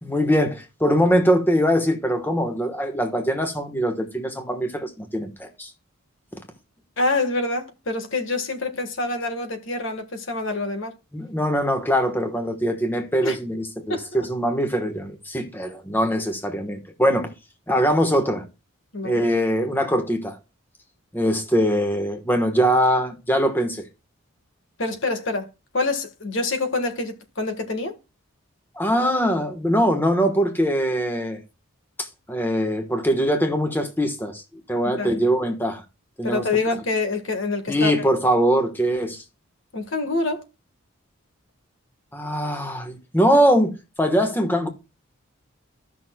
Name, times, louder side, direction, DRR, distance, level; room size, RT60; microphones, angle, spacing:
voice 1, 0.0-5.7 11.1-17.3 17.7-18.5 19.0-20.4 21.1-23.9 28.8-31.4 32.0-34.4 34.7-35.8 36.2-36.5 37.7-39.2 42.1-44.7, equal, 10° left, 1.2 m, -22 dB
voice 2, 7.0-10.9 13.2-13.4 13.9-14.3 18.9-19.2 24.8-25.5 25.7-28.0 34.8-35.2 36.2-38.1 39.7-40.4, left 3 dB, 60° left, 1.5 m, -26 dB
15.0 x 6.2 x 2.2 m
head